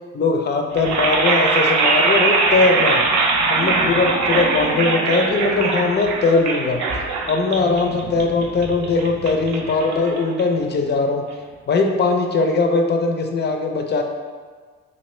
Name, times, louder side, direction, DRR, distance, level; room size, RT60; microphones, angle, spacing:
voice 1, 0.1-3.0 3.5-6.8 7.3-11.3 11.7-14.0, left 3 dB, 35° left, 3 dB, 0.4 m, -20 dB
sound 1, 0.7-10.8, right 3 dB, 70° right, 0.5 m, -21 dB
3.1 x 2.6 x 3.0 m, 1.5 s
cardioid pair, 90°, 30 cm